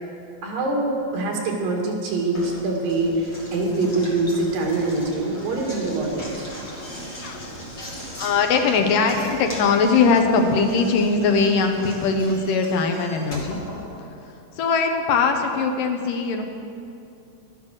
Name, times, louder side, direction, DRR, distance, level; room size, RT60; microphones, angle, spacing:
voice 1, 0.4-6.5, right 2 dB, 85° right, 0 dB, 3.8 m, -24 dB
Knock, 2.3-14.5, equal, 30° left, 2.5 m, -38 dB
voice 2, 8.2-13.6 14.6-16.4, left 4 dB, 75° left, 4 dB, 2.6 m, -20 dB
12.5 x 12.0 x 6.4 m, 2.6 s
omnidirectional pair, 4.0 m